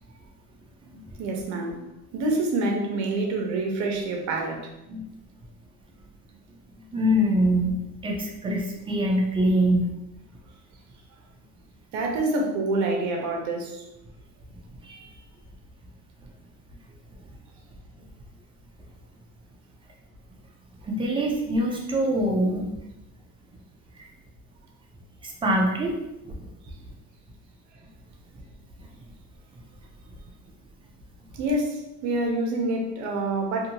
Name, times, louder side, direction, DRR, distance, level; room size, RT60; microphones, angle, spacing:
voice 1, 1.2-1.8 2.1-4.7 11.9-13.8 31.3-33.7, right 2 dB, 55° right, 2 dB, 0.7 m, -27 dB
voice 2, 6.9-9.9 14.8-15.1 20.8-22.7 25.2-26.0, equal, 15° right, -1 dB, 0.4 m, -24 dB
2.7 x 2.6 x 2.7 m, 0.91 s
cardioid pair, 145°, 35 cm